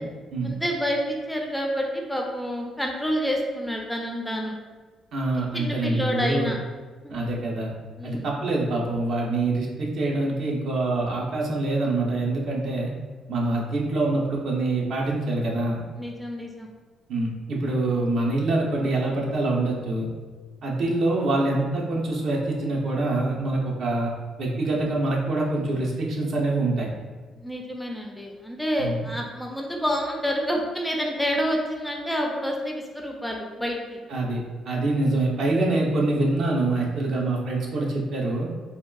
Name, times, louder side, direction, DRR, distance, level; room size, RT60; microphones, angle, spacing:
voice 1, 0.4-4.6 5.5-6.6 7.0-7.1 8.0-8.3 13.4-13.6 16.0-16.7 27.4-34.0, equal, 5° left, 0 dB, 0.3 m, -28 dB
voice 2, 5.1-6.5 7.1-7.7 8.0-12.9 13.3-15.8 17.1-20.1 20.6-24.1 24.4-26.9 28.8-29.0 34.1-34.4 34.7-38.5, right 2 dB, 65° right, -2 dB, 0.6 m, -25 dB
3.5 x 2.3 x 2.3 m, 1.4 s
cardioid pair, 120°, 0 cm